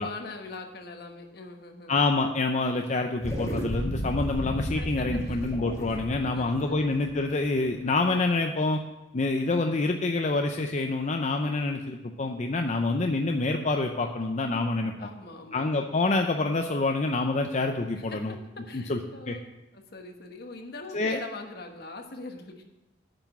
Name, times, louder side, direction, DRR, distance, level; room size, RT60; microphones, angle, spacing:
voice 1, 0.0-2.0 4.8-5.5 6.3-6.9 15.0-15.7 18.1-19.4 19.7-22.6, left 3 dB, 65° left, 4 dB, 1.3 m, -42 dB
voice 2, 1.9-8.8 9.1-14.9 15.5-18.3 18.7-19.0 19.3-19.4 20.9-21.2, left 3 dB, 40° left, 4 dB, 0.6 m, -27 dB
sound 1, 3.2-7.9, equal, 20° left, 1.7 m, -34 dB
8.9 x 5.9 x 8.2 m, 1.0 s
head